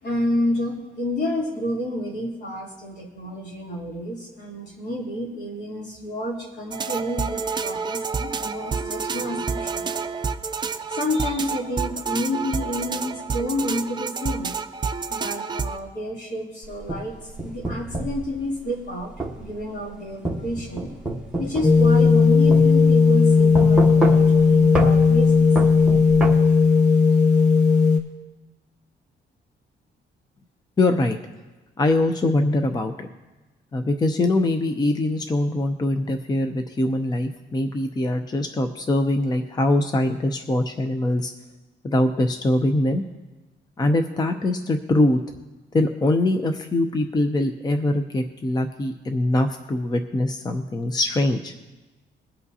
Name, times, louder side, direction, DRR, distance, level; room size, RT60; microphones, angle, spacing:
voice 1, 0.0-9.9 10.9-14.6 15.1-17.1 17.4-19.1 19.4-21.0 21.4-25.5, left 1 dB, 65° left, -3 dB, 3.1 m, -29 dB
sound 1, 6.7-15.8, right 5 dB, 25° right, 0.5 m, -29 dB
sound 2, 16.6-18.2 19.2-19.4 20.2-22.2 22.5-22.6 23.5-24.4 24.7-24.9 25.6-26.3, right 2 dB, 5° right, 1.3 m, -26 dB
sound 3, 21.6-28.0, left 4 dB, 40° left, 1.3 m, -16 dB
voice 2, 30.8-31.2 31.8-33.1 33.7-41.3 41.8-43.0 43.8-45.2 45.7-51.5, left 2 dB, 20° left, 6 dB, 0.6 m, -23 dB
22.5 x 8.3 x 2.8 m, 1.2 s
cardioid pair, 150°, 19 cm